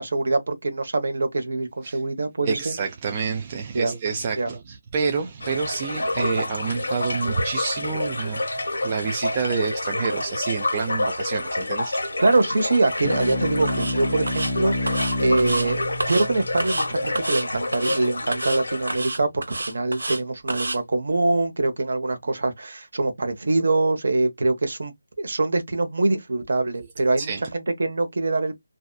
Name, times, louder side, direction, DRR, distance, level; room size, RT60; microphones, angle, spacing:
voice 1, 0.0-2.7 3.7-3.9 4.3-4.5 12.2-15.0 15.2-15.8 16.1-24.9 25.2-28.6, right 2 dB, 55° right, 0.8 m, -24 dB
voice 2, 2.5-8.4 8.8-12.0 27.2-27.4, right 5 dB, 20° right, 0.3 m, -28 dB
sound 1, 5.4-19.0, left 2 dB, 75° left, 0.9 m, -28 dB
sound 2, 13.0-17.9, left 1 dB, 5° left, 0.7 m, -30 dB
sound 3, 13.1-13.4 13.7-14.0 14.3-14.5 14.9-15.7 16.0-16.3 16.6-16.9 17.2-17.5 17.7-18.0 18.3-18.6 18.9-20.2 20.5-20.8, right 2 dB, 85° right, 0.8 m, -29 dB
2.7 x 2.2 x 2.2 m
figure-of-eight pair, 170°, 0 cm